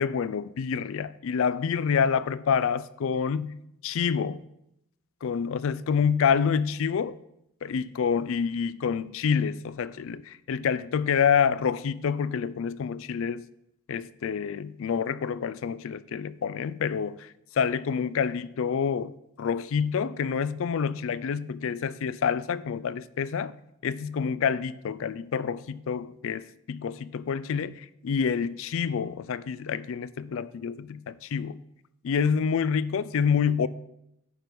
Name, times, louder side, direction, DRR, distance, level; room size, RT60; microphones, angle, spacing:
voice 1, 0.0-3.6 3.8-4.4 5.2-7.2 7.6-13.4 13.9-23.6 23.8-31.6 32.0-33.7, left 6 dB, 60° left, 0.4 m, -27 dB
10.0 x 4.7 x 5.1 m
head